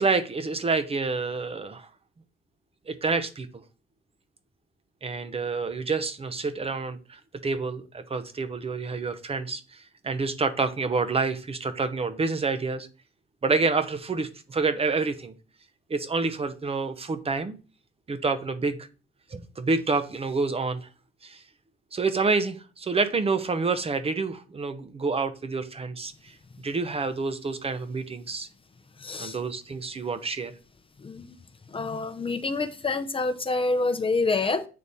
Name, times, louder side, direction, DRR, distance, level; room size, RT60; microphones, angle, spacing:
voice 1, 0.0-1.9 2.9-3.6 5.0-12.9 13.4-15.3 15.9-17.6 18.1-18.9 19.3-20.9 21.2-21.4 21.9-26.3 26.6-28.5 29.2-30.5, right 4 dB, 30° right, 11 dB, 0.7 m, -28 dB
voice 2, 29.0-29.4 31.0-31.4 31.7-34.7, left 3 dB, 25° left, 9 dB, 0.7 m, -27 dB
8.4 x 3.2 x 4.1 m, 0.35 s
cardioid pair, 90°, 20 cm